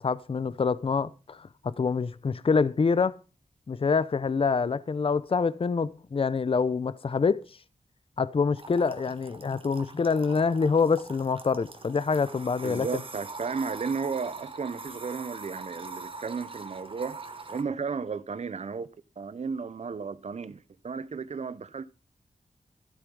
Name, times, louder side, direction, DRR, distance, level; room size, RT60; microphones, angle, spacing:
voice 1, 0.0-3.2 3.7-7.4 8.2-12.9, left 5 dB, 45° left, 0.6 m, -26 dB
sound 1, 8.6-17.6, right 3 dB, 40° right, 1.6 m, -43 dB
voice 2, 12.6-17.2 17.5-18.9 19.2-21.9, right 5 dB, 55° right, 0.8 m, -34 dB
14.0 x 8.1 x 5.4 m
wide cardioid pair, 120°, 13 cm